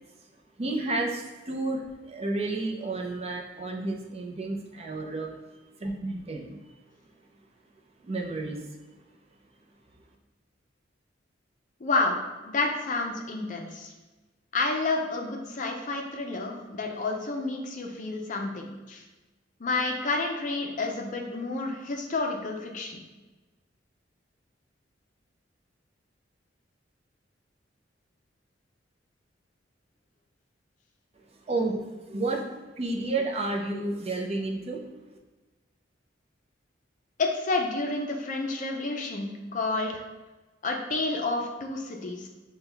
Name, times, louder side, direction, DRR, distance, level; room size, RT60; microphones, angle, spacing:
voice 1, 0.6-5.3 5.8-6.6 8.0-8.6 31.5-32.5 32.8-34.8, right 2 dB, 35° right, 1 dB, 0.5 m, -31 dB
voice 2, 11.8-12.2 12.4-13.9 14.5-19.0 19.6-23.0 37.2-40.0 40.6-42.3, left 3 dB, 45° left, 2 dB, 0.5 m, -30 dB
6.1 x 2.3 x 3.3 m, 1.2 s
head